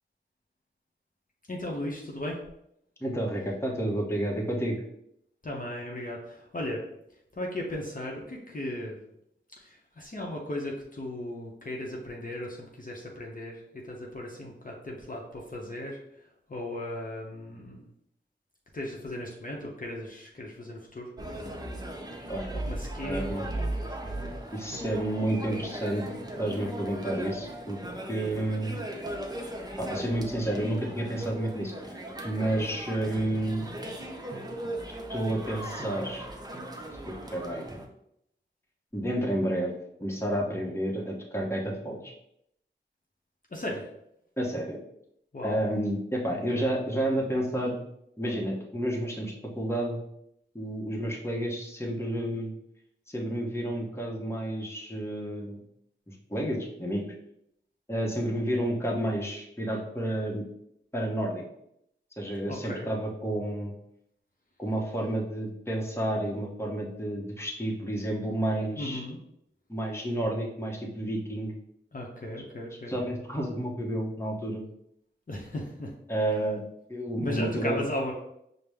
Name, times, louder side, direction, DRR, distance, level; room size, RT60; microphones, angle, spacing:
voice 1, 1.5-2.4 5.4-6.8 7.3-9.0 9.6-17.9 18.7-21.1 22.5-24.0 43.5-43.9 45.3-45.6 46.5-46.7 62.5-62.9 68.8-69.2 71.9-73.0 75.3-75.9 77.2-78.1, left 1 dB, 45° left, -2 dB, 0.7 m, -36 dB
voice 2, 3.0-4.8 22.3-22.6 23.0-23.5 24.5-26.0 26.4-27.8 28.1-28.7 29.8-32.0 32.2-33.6 35.1-36.2 37.1-37.6 38.9-39.7 40.0-42.1 44.4-44.8 45.4-47.8 48.2-50.0 50.5-52.5 53.1-55.6 56.1-57.0 57.9-60.5 60.9-61.5 62.2-63.7 64.6-69.0 69.7-71.5 72.9-74.6 76.1-76.6 76.9-77.8, right 1 dB, 10° left, -1 dB, 0.9 m, -30 dB
sound 1, 21.2-37.8, right 1 dB, 20° right, 0.7 m, -37 dB
5.0 x 2.0 x 3.4 m, 0.76 s
wide cardioid pair, 45°, 20 cm